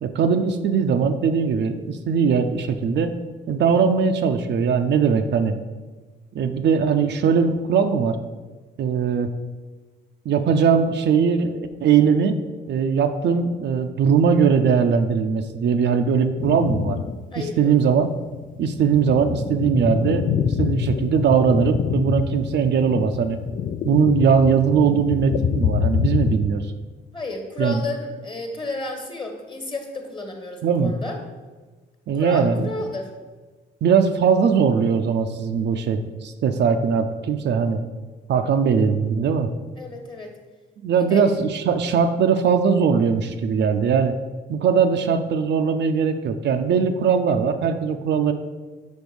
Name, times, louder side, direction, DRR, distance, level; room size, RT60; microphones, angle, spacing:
voice 1, 0.0-3.1 3.5-5.6 6.3-8.2 8.8-9.3 10.3-12.4 12.7-17.0 17.4-18.1 18.6-23.4 23.8-26.7 27.6-27.8 30.6-30.9 32.1-32.7 33.8-37.8 38.3-39.5 40.8-44.1 44.5-48.3, right 6 dB, 60° right, 7 dB, 0.5 m, -20 dB
sound 1, 16.4-17.3 17.7-17.8 18.5-26.4, left 8 dB, 45° left, 0.4 m, -26 dB
voice 2, 17.3-17.7 27.1-31.2 32.1-33.1 39.7-40.3 41.0-41.3, left 2 dB, 25° left, 4 dB, 1.5 m, -32 dB
5.3 x 4.6 x 6.1 m, 1.3 s
cardioid pair, 90°, 20 cm